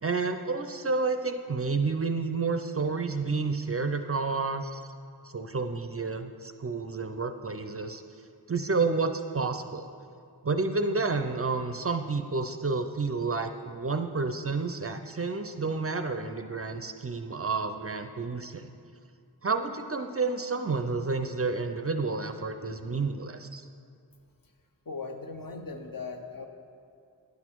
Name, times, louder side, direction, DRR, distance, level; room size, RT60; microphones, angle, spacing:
voice 1, 0.0-4.8 5.2-8.0 8.5-9.9 10.4-18.7 19.4-23.6, right 4 dB, 35° right, 7 dB, 0.4 m, -30 dB
voice 2, 24.9-26.5, left 4 dB, 55° left, 4 dB, 0.8 m, -38 dB
9.7 x 6.2 x 4.5 m, 2.4 s
wide cardioid pair, 50°, 40 cm